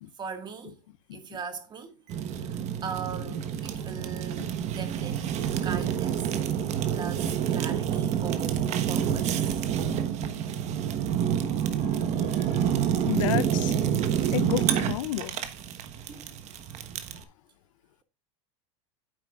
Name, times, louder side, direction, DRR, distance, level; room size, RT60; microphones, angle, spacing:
voice 1, 0.2-0.8 1.1-2.0 2.3-6.3 6.9-9.8 15.7-15.8 16.1-16.8, right 6 dB, 25° right, 1.9 m, -40 dB
Fire, 2.1-17.2, right 9 dB, 45° right, 1.2 m, -28 dB
voice 2, 13.1-13.8 14.3-15.4, left 13 dB, 80° left, 0.6 m, -31 dB
9.5 x 7.7 x 2.4 m
supercardioid pair, 125°, 16 cm